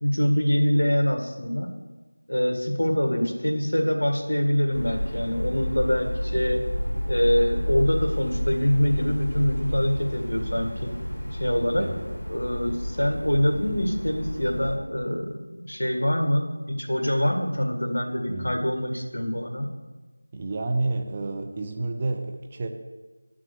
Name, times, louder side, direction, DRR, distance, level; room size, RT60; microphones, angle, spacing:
voice 1, 0.0-1.7 2.3-6.6 7.1-10.9 11.4-11.9 12.3-19.7, equal, 65° left, 4 dB, 1.7 m, -24 dB
sound 1, 4.7-14.8, equal, 25° left, 3.0 m, -30 dB
voice 2, 20.3-22.7, right 2 dB, 20° right, 3 dB, 0.5 m, -29 dB
9.4 x 6.0 x 6.6 m, 1.2 s
figure-of-eight pair, 170°, 0 cm